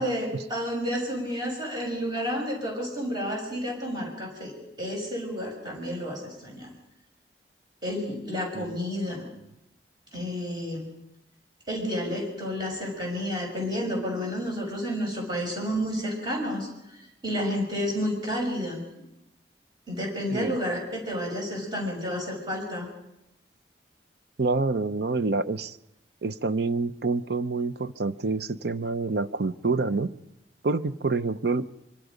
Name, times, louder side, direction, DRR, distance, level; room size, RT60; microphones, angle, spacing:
voice 1, 0.0-6.7 7.8-9.2 10.1-10.9 11.7-18.8 19.9-22.9, equal, 25° right, 0 dB, 6.4 m, -30 dB
voice 2, 24.4-25.8 26.2-30.1 30.6-31.7, right 3 dB, 65° right, 13 dB, 0.7 m, -27 dB
24.5 x 24.5 x 5.2 m, 0.85 s
head